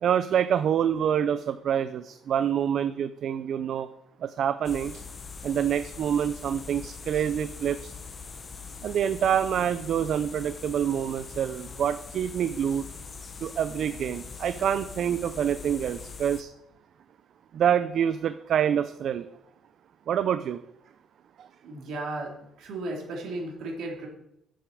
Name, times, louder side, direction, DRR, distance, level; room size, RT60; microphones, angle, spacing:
voice 1, 0.0-3.9 4.2-4.9 5.4-7.9 8.8-12.8 13.4-16.5 17.5-19.3 20.1-20.6 21.4-21.5, right 9 dB, 55° right, 12 dB, 0.5 m, -26 dB
sound 1, 4.6-16.4, left 5 dB, 30° left, 0.9 m, -42 dB
voice 2, 21.6-22.3 22.6-24.1, right 2 dB, 70° right, 0 dB, 3.3 m, -35 dB
8.3 x 7.7 x 6.4 m, 0.80 s
cardioid pair, 150°, 0 cm